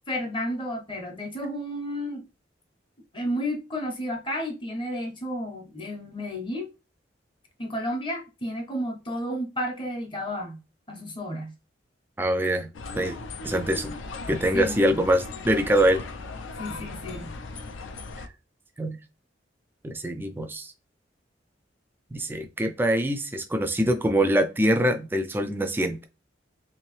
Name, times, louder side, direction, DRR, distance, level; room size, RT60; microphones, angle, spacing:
voice 1, 0.1-2.3 3.1-6.7 7.6-10.6 10.9-11.5 14.5-14.9 16.6-17.3, equal, 25° left, 0.7 m, -32 dB
voice 2, 12.2-12.7 12.9-13.2 13.4-13.9 14.3-16.0 18.8-19.0 19.8-20.7 22.1-26.0, right 1 dB, 10° right, 0.3 m, -24 dB
sound 1, 12.7-18.3, left 3 dB, 90° left, 0.5 m, -38 dB
3.4 x 2.8 x 3.1 m
head